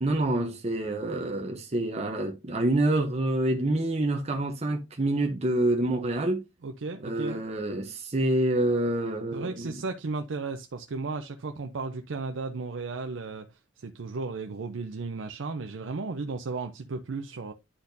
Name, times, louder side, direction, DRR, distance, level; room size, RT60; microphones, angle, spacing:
voice 1, 0.0-6.4 7.0-9.8, right 1 dB, 35° right, 0.8 m, -27 dB
voice 2, 6.6-7.4 9.3-13.5 13.8-17.5, right 3 dB, 85° right, 0.6 m, -34 dB
10.0 x 4.2 x 2.6 m
head